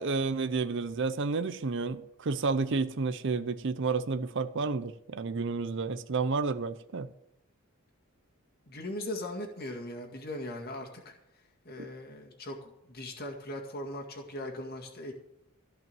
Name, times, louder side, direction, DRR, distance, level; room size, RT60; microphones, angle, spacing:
voice 1, 0.0-7.1, right 4 dB, 55° right, 0.6 m, -31 dB
voice 2, 8.7-15.1, left 1 dB, 45° left, 2.0 m, -40 dB
15.5 x 5.5 x 9.0 m
head